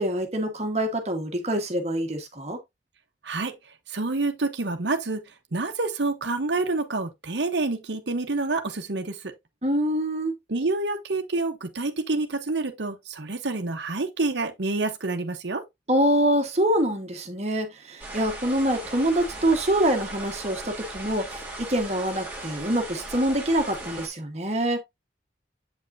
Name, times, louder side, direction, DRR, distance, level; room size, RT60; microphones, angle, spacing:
voice 1, 0.0-2.6 9.6-10.3 15.9-24.8, right 1 dB, 35° right, 1.4 m, -25 dB
voice 2, 3.9-5.2 5.5-9.3 10.5-15.6, right 3 dB, 70° right, 0.9 m, -28 dB
sound 1, 18.0-24.1, right 2 dB, 10° right, 2.2 m, -38 dB
8.1 x 5.4 x 2.6 m
head